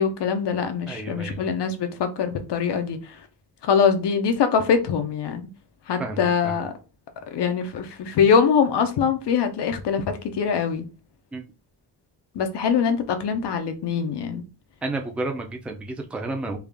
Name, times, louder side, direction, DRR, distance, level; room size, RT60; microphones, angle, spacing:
voice 1, 0.0-3.1 3.6-5.4 5.9-6.7 7.3-10.8 12.3-14.4, left 6 dB, 85° left, 0.8 m, -23 dB
voice 2, 0.9-1.5 6.0-6.5 11.3-11.4 14.8-16.6, right 2 dB, 5° right, 0.4 m, -31 dB
3.5 x 2.4 x 3.4 m
wide cardioid pair, 145°, 40 cm